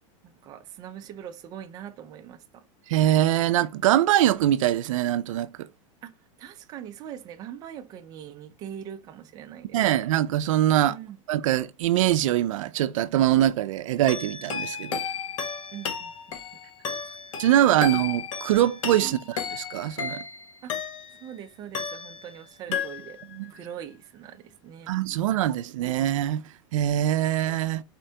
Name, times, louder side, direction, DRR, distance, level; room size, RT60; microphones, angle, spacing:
voice 1, 0.2-2.6 6.0-6.1 6.4-9.8 10.9-11.2 15.7-16.1 17.1-17.2 19.0-19.2 20.6-20.7 21.2-23.2 23.5-24.9, right 9 dB, 25° right, 0.5 m, -42 dB
voice 2, 2.9-5.7 9.7-11.0 11.3-15.0 17.4-20.2 23.3-23.5 24.9-26.4 26.7-27.8, right 12 dB, 80° right, 0.5 m, -23 dB
sound 1, 14.1-21.3 21.7-22.4 22.7-23.3, left 6 dB, 75° left, 1.3 m, -34 dB
4.4 x 3.3 x 2.7 m
supercardioid pair, 160°, 16 cm